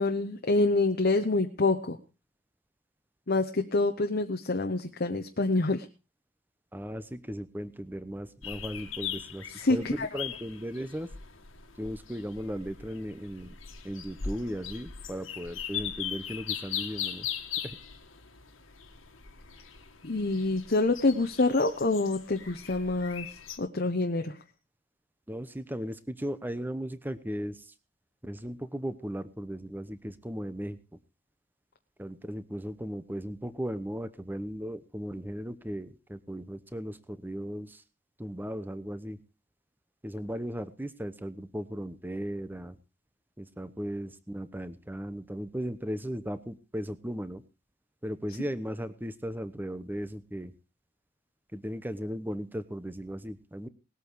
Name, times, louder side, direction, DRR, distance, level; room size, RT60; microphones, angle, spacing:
voice 1, 0.0-2.0 3.3-5.8 9.6-10.1 20.0-23.3 23.6-24.3, left 2 dB, 50° left, 5 dB, 1.0 m, -26 dB
voice 2, 6.7-11.1 11.8-13.6 13.8-17.3 17.6-17.8 25.3-27.7 28.2-31.0 32.0-37.8 38.2-39.2 40.0-42.8 43.4-47.4 48.0-50.5 51.5-53.7, equal, 10° right, 13 dB, 0.9 m, -37 dB
sound 1, 8.4-23.6, left 8 dB, 80° left, 2.0 m, -40 dB
19.5 x 8.5 x 4.7 m, 0.33 s
head